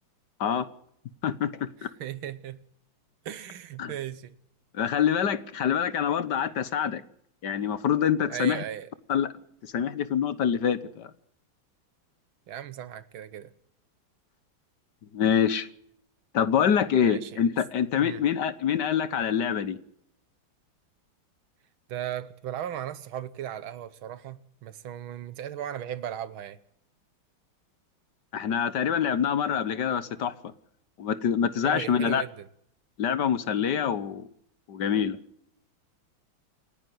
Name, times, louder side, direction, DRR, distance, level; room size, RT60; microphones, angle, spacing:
voice 1, 1.2-1.9 3.8-3.9 4.7-7.0 7.4-8.6 9.1-9.3 9.7-11.1 15.1-15.7 16.3-19.8 28.3-30.3 31.0-32.2 33.0-34.2 34.7-35.2, left 8 dB, 60° left, 1.6 m, -25 dB
voice 2, 1.8-2.6 3.3-4.4 8.3-8.9 12.5-13.5 17.0-17.4 18.0-18.2 21.9-26.6 31.6-32.5, right 10 dB, 80° right, 1.9 m, -37 dB
28.0 x 10.5 x 9.4 m
omnidirectional pair, 2.2 m